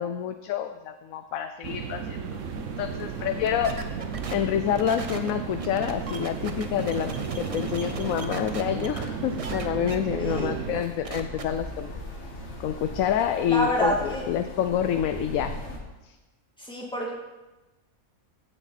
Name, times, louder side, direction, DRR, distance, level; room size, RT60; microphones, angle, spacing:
voice 1, 0.0-4.0 4.3-11.9 12.6-15.5, left 9 dB, 75° left, 8 dB, 1.0 m, -28 dB
sound 1, 1.6-10.8, right 7 dB, 65° right, 1.0 m, -35 dB
sound 2, 2.3-15.8, left 1 dB, 55° left, 1.9 m, -40 dB
sound 3, 3.4-9.1 9.4-10.0 10.3-10.5 10.8-11.4, right 4 dB, 35° right, 0.6 m, -37 dB
voice 2, 10.2-10.6 13.5-14.3 16.6-17.1, equal, 5° left, -4 dB, 2.4 m, -27 dB
16.0 x 6.9 x 4.2 m, 1.1 s
omnidirectional pair, 1.5 m